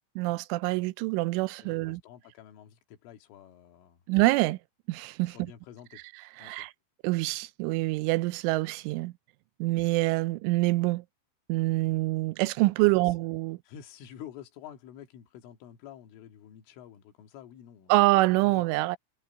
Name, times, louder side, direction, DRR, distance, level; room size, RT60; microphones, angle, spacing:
voice 1, 0.2-2.0 4.1-4.6 4.9-5.4 6.4-6.7 7.0-9.1 9.6-11.0 11.5-13.6 17.9-19.0, right 21 dB, 85° right, 3.1 m, -26 dB
voice 2, 1.6-4.0 5.3-6.0 6.4-6.7 13.0-13.1 13.6-18.8, left 10 dB, 85° left, 4.6 m, -49 dB
omnidirectional pair, 5.6 m